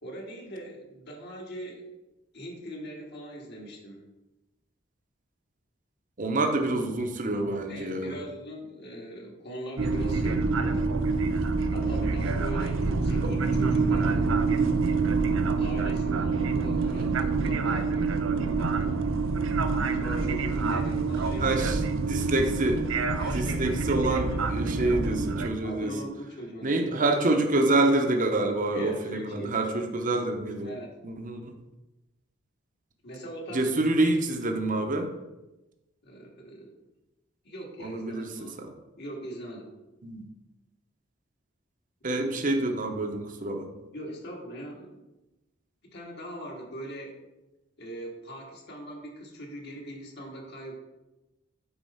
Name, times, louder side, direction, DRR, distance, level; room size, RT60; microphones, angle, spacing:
voice 1, 0.0-1.8 2.3-4.0 7.7-10.9 11.7-14.3 15.6-19.0 19.9-21.9 23.2-23.6 24.0-24.4 24.7-25.0 25.6-27.0 28.7-29.6 30.6-30.9 33.0-33.7 34.0-34.1 36.0-36.7 37.4-38.6 39.0-39.7 42.1-42.7 43.9-44.9 45.9-47.2 47.8-50.8, right 1 dB, 60° left, -1 dB, 2.1 m, -41 dB
voice 2, 6.2-8.2 12.0-12.1 13.2-13.3 16.8-17.2 21.4-22.9 23.3-25.9 26.6-30.7 31.0-31.5 33.5-35.1 37.8-38.7 40.0-40.3 42.0-43.7, right 2 dB, 45° right, 4 dB, 0.9 m, -27 dB
sound 1, 9.8-25.5, right 4 dB, 85° right, 0.6 m, -26 dB
8.9 x 4.1 x 5.6 m, 1.0 s
head